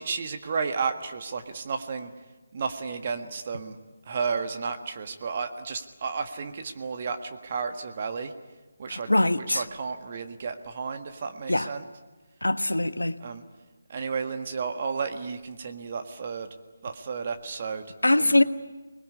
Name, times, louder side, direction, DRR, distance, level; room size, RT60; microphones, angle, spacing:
voice 1, 0.0-2.1 2.5-3.8 4.0-8.3 8.8-9.1 9.4-11.8 13.2-13.4 13.9-16.5 16.8-17.8 18.1-18.4, right 5 dB, 40° right, 6 dB, 1.6 m, -32 dB
voice 2, 8.9-9.6 11.5-11.7 12.4-13.2 18.0-18.4, left 1 dB, 90° left, 11 dB, 1.2 m, -22 dB
25.0 x 21.0 x 9.8 m, 1.2 s
figure-of-eight pair, 155°, 0 cm